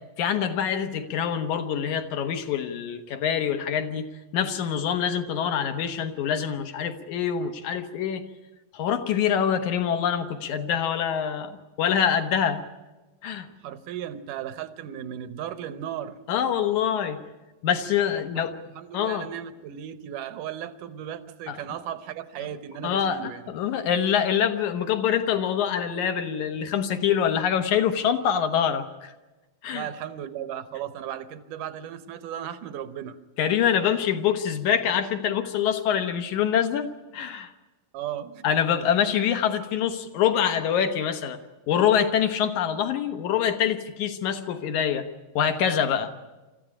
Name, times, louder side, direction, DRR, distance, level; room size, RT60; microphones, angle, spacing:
voice 1, 0.2-4.1 4.3-8.2 8.7-12.6 13.2-13.5 16.3-17.2 17.6-18.5 18.9-19.3 21.5-21.6 22.8-29.1 29.6-29.8 33.4-37.5 38.4-41.4 41.7-45.1 45.4-46.1, left 8 dB, 65° left, 7 dB, 2.4 m, -25 dB
voice 2, 13.6-16.2 18.0-23.5 29.7-33.2 37.9-38.9, right 10 dB, 70° right, 12 dB, 2.4 m, -36 dB
26.0 x 14.5 x 10.0 m, 1.1 s
omnidirectional pair, 4.0 m